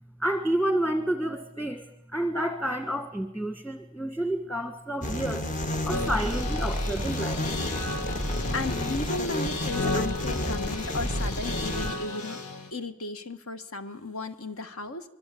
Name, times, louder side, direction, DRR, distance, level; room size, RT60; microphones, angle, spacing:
voice 1, 0.2-1.8 2.1-5.5 5.8-7.4, right 1 dB, 10° left, 6 dB, 1.6 m, -29 dB
sound 1, 5.0-11.9, left 1 dB, 35° left, 1.5 m, -30 dB
sound 2, 5.9-12.7, left 2 dB, 90° left, 2.6 m, -34 dB
voice 2, 8.5-12.4 12.7-15.1, left 2 dB, 70° left, 9 dB, 1.8 m, -35 dB
25.5 x 22.5 x 8.6 m, 0.87 s
head